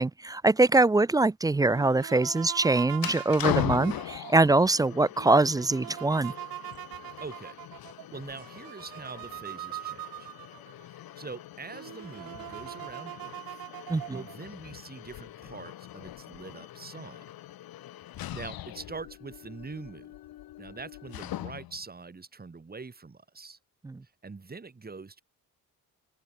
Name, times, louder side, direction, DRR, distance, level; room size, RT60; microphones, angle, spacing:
voice 1, 0.0-6.3 13.9-14.2 23.8-24.0, right 2 dB, 10° right, 0.4 m, -23 dB
sound 1, 1.6-10.9 11.4-11.5 11.7-14.5, right 14 dB, 75° right, 1.4 m, -42 dB
sound 2, 2.9-21.9, left 13 dB, 80° left, 3.8 m, -40 dB
voice 2, 7.2-10.3 10.8-13.6 14.1-17.3 18.3-20.1 20.6-23.6 24.2-25.2, right 4 dB, 25° right, 5.0 m, -44 dB
cardioid pair, 90°, 35 cm